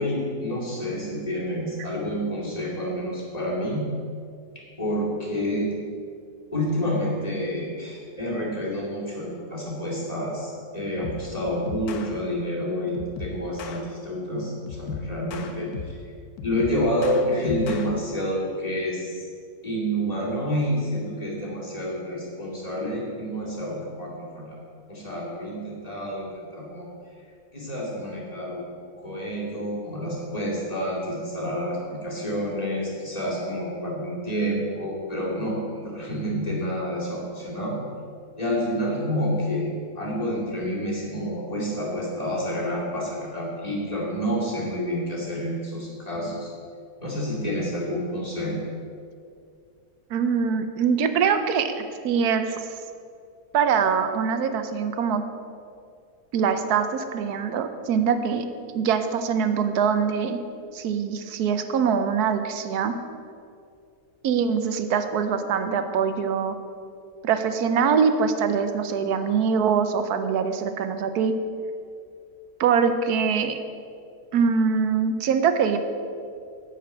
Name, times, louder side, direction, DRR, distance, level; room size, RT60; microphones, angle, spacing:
voice 1, 0.0-3.9 4.8-5.7 6.5-16.0 16.4-19.3 19.6-24.6 24.9-26.9 27.5-28.7 29.0-37.8 38.4-46.5 47.0-48.6, equal, 25° left, -5 dB, 2.5 m, -28 dB
sound 1, 11.0-11.3 11.7-12.1 12.9-13.8 14.7-16.0 16.4-17.9, left 5 dB, 80° left, 1.4 m, -37 dB
voice 2, 50.1-52.6 53.5-55.2 56.3-58.4 58.7-60.4 60.7-63.0 64.2-66.6 67.2-71.3 72.6-73.6 74.3-75.8, right 6 dB, 90° right, 9 dB, 1.2 m, -23 dB
10.5 x 5.0 x 7.8 m, 2.3 s
omnidirectional pair, 1.6 m